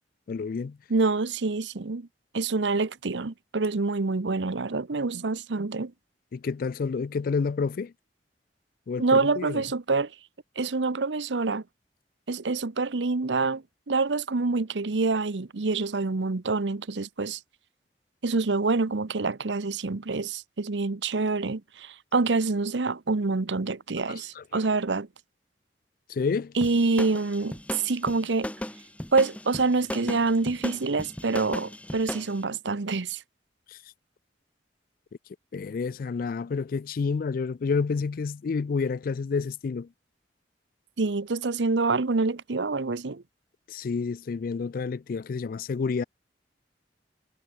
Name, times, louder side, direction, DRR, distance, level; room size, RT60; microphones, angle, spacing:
voice 1, 0.3-0.8 6.3-7.9 8.9-9.6 24.1-24.6 26.1-26.5 33.7-33.8 35.5-39.9 43.7-46.0, left 5 dB, 50° left, 0.4 m, -29 dB
voice 2, 0.9-2.1 2.3-5.9 9.0-10.1 10.6-11.6 12.3-17.4 18.2-25.1 26.6-28.5 29.1-33.2 41.0-43.2, right 3 dB, 85° right, 0.9 m, -26 dB
sound 1, 26.6-32.3, left 1 dB, 10° left, 1.0 m, -36 dB
head